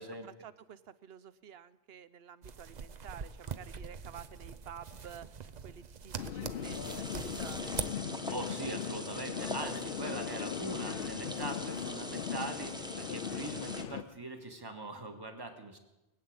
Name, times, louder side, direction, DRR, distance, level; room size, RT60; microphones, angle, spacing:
voice 1, 0.0-7.8, right 8 dB, 75° right, 15 dB, 0.9 m, -51 dB
sound 1, 2.4-7.9, right 6 dB, 50° right, 0.7 m, -43 dB
sound 2, 6.2-14.0, left 9 dB, 65° left, 0.8 m, -39 dB
sound 3, 6.6-13.8, equal, 5° right, 1.0 m, -43 dB
voice 2, 8.3-15.8, right 2 dB, 25° right, 5 dB, 1.6 m, -42 dB
20.0 x 7.8 x 8.6 m, 1.0 s
omnidirectional pair, 1.0 m